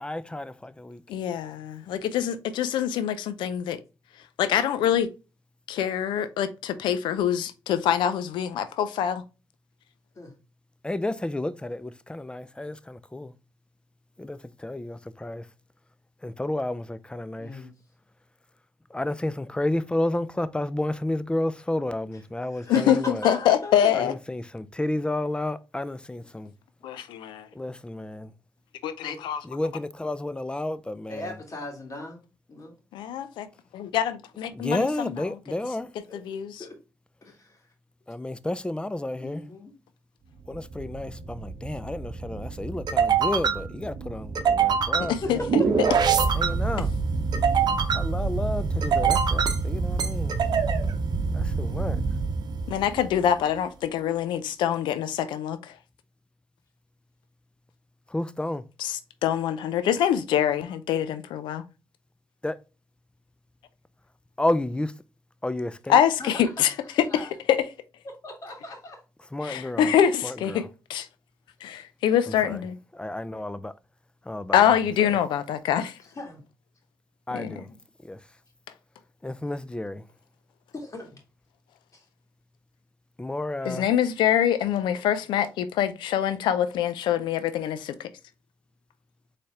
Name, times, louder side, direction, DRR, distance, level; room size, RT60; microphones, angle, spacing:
voice 1, 0.0-1.0 10.8-13.3 14.2-15.4 16.2-17.6 18.9-23.2 23.9-26.5 27.5-28.3 29.4-31.3 34.5-35.9 38.1-39.4 40.5-45.4 46.3-46.9 47.9-50.4 51.3-52.0 58.1-58.6 62.4-62.6 64.4-64.9 65.4-66.0 69.3-69.9 70.2-70.7 72.3-72.6 72.9-73.7 74.3-74.6 75.0-75.2 77.3-77.7 78.0-78.2 79.2-80.0 83.2-83.9, left 1 dB, 10° left, 0.5 m, -31 dB
voice 2, 1.1-3.8 4.4-5.1 5.7-9.2 22.7-24.1 26.8-27.5 28.8-29.4 32.9-33.5 33.7-35.2 36.1-36.6 45.1-45.4 52.7-55.7 58.8-61.6 65.9-66.7 67.0-67.7 69.4-71.1 71.6-72.8 74.5-75.9 77.3-77.5 83.6-88.1, left 10 dB, 85° left, 0.5 m, -25 dB
voice 3, 17.4-17.7 22.5-24.0 29.0-29.2 31.1-32.2 32.5-32.8 36.1-36.2 36.6-36.8 37.2-37.6 39.2-39.7 45.2-45.5 66.2-66.7 67.1-67.3 68.0-69.0 76.0-76.4 77.7-77.8 80.7-81.2 81.9-82.0, left 1 dB, 45° left, 2.1 m, -38 dB
sound 1, 40.5-53.3, right 5 dB, 60° right, 0.8 m, -25 dB
4.2 x 3.3 x 3.6 m
supercardioid pair, 50°, 8 cm